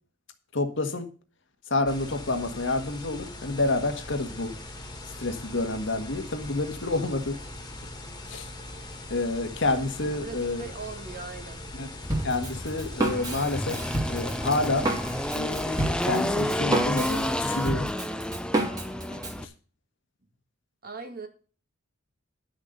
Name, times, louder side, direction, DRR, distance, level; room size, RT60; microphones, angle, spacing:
voice 1, 0.5-1.1 1.7-4.5 5.2-7.4 8.3-8.5 9.1-10.7 11.7-11.9 12.2-13.8 14.1-14.9 15.3-17.9, left 2 dB, 65° left, 6 dB, 1.7 m, -28 dB
sound 1, 1.9-17.3, left 1 dB, 20° left, 2.1 m, -41 dB
voice 2, 10.0-11.7 20.8-21.3, right 4 dB, 50° right, 5 dB, 2.1 m, -40 dB
Engine, 12.0-19.4, left 1 dB, 5° left, 0.6 m, -30 dB
Drum kit, 12.1-19.4, right 1 dB, 20° right, 2.5 m, -30 dB
10.5 x 6.5 x 6.5 m, 0.38 s
head